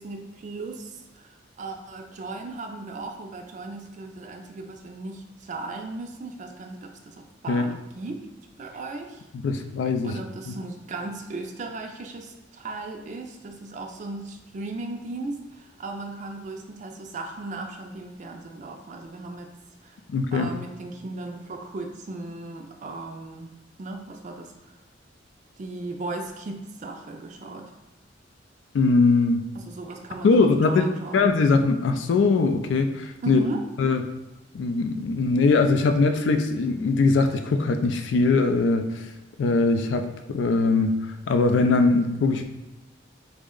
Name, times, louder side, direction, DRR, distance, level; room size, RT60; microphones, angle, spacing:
voice 1, 0.0-1.3 1.6-8.3 8.6-9.2 10.0-19.5 19.8-20.0 20.3-24.5 25.6-27.7 29.5-31.3 33.2-33.6, right 2 dB, 40° right, 3 dB, 0.3 m, -36 dB
voice 2, 9.4-10.2 10.5-10.6 20.1-20.5 28.7-29.4 30.2-30.9 31.1-33.4 33.8-34.0 34.5-38.8 39.4-40.9 41.3-42.4, left 3 dB, 75° left, 7 dB, 0.3 m, -21 dB
3.5 x 2.1 x 3.7 m, 1.0 s
head